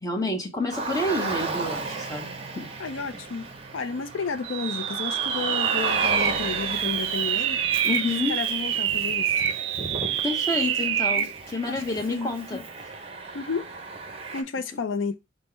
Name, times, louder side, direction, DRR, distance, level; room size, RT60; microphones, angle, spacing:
voice 1, 0.0-2.7 7.8-8.3 10.2-12.6, left 2 dB, 20° left, 0.8 m, -29 dB
Car, 0.7-14.4, right 3 dB, 30° right, 0.6 m, -35 dB
voice 2, 2.8-7.6 8.3-9.5 11.2-11.3 11.7-11.8 12.1-12.3 13.3-13.7 14.3-15.2, left 4 dB, 75° left, 0.5 m, -32 dB
sound 1, 4.4-11.4, right 9 dB, 70° right, 0.4 m, -26 dB
5.3 x 2.1 x 4.4 m
head